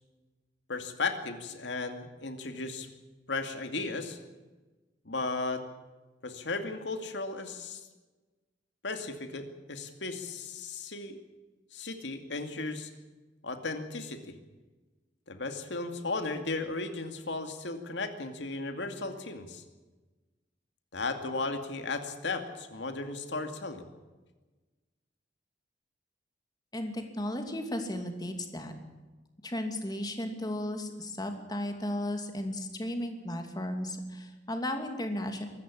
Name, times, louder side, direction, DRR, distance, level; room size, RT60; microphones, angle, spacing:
voice 1, 0.7-2.9 3.3-4.2 5.0-5.6 6.2-7.8 8.8-11.2 11.7-12.9 13.4-14.3 15.3-19.6 20.9-23.9, left 3 dB, 70° left, 7 dB, 2.4 m, -35 dB
voice 2, 26.7-28.7 29.4-35.5, left 1 dB, 20° left, 5 dB, 2.6 m, -35 dB
24.0 x 13.5 x 8.7 m, 1.2 s
head